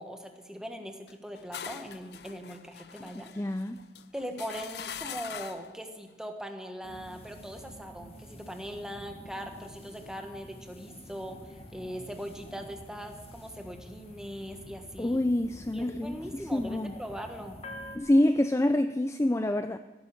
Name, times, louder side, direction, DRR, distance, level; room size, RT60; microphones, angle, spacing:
voice 1, 0.0-3.5 4.1-15.2 15.7-17.6, equal, 5° right, 4 dB, 1.3 m, -41 dB
sound 1, 1.1-5.8, left 8 dB, 60° left, 0.6 m, -43 dB
voice 2, 3.3-3.8 15.0-16.9 17.9-19.8, left 1 dB, 15° left, 9 dB, 0.4 m, -26 dB
sound 2, 6.8-18.0, equal, 35° left, 1.6 m, -48 dB
16.5 x 9.7 x 7.2 m, 1.3 s
head